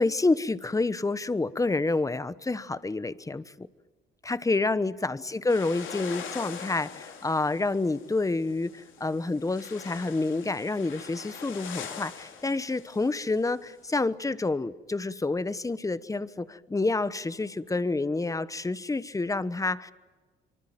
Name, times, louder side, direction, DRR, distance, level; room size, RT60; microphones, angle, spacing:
voice 1, 0.0-3.7 4.2-19.9, left 3 dB, 15° left, 16 dB, 1.1 m, -28 dB
sound 1, 5.5-13.8, left 7 dB, 75° left, 3.6 m, -43 dB
25.0 x 24.5 x 9.1 m, 1.3 s
cardioid pair, 90°, 20 cm